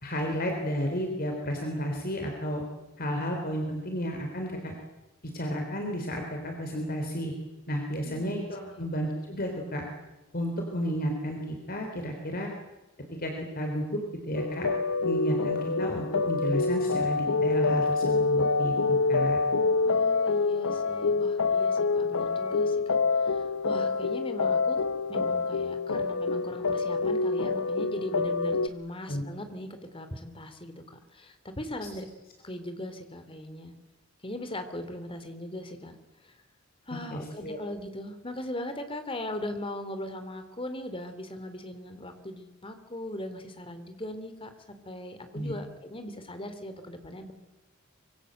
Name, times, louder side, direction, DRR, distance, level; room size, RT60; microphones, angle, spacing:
voice 1, 0.0-2.6 3.0-4.8 5.2-7.3 7.7-9.9 10.3-12.5 13.1-14.0 14.3-14.7 15.0-19.4 29.1-29.2 37.1-37.6 45.3-45.5, equal, 45° left, 2 dB, 3.8 m, -32 dB
sound 1, 14.4-28.7, left 4 dB, 85° left, 1.0 m, -26 dB
voice 2, 19.8-24.8 25.1-32.1 32.4-33.7 34.2-36.0 36.2-36.3 36.9-44.5 44.8-47.3, left 1 dB, 25° left, 9 dB, 2.9 m, -39 dB
25.5 x 23.5 x 7.9 m, 1.1 s
head